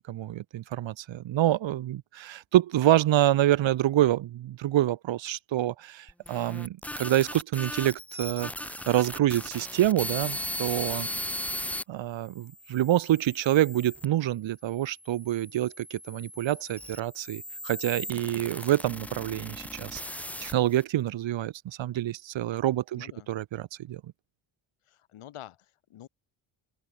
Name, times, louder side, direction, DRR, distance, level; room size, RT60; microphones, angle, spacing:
voice 1, 0.0-8.5 8.9-11.1 11.9-20.0 20.4-24.0, right 13 dB, 65° right, 1.1 m, -27 dB
sound 1, 6.1-11.8 12.5-14.1 14.9-20.8, left 1 dB, 5° left, 0.9 m, -38 dB
voice 2, 10.9-11.2 22.9-23.3 24.8-26.1, left 12 dB, 90° left, 6.9 m, -48 dB
open air
wide cardioid pair, 155°, 49 cm